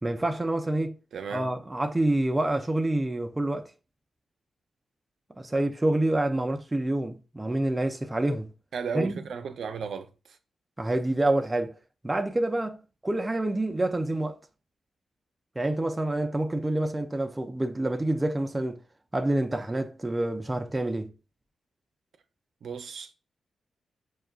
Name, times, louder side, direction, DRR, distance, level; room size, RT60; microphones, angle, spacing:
voice 1, 0.0-1.0 1.3-3.7 5.4-8.5 8.9-9.1 10.8-11.7 12.0-12.8 13.0-14.4 15.6-18.8 19.1-21.1, right 1 dB, 15° right, 0.4 m, -27 dB
voice 2, 1.1-1.5 8.7-10.1 22.6-23.1, right 6 dB, 75° right, 0.5 m, -34 dB
6.2 x 2.2 x 2.3 m
cardioid pair, 100°, 0 cm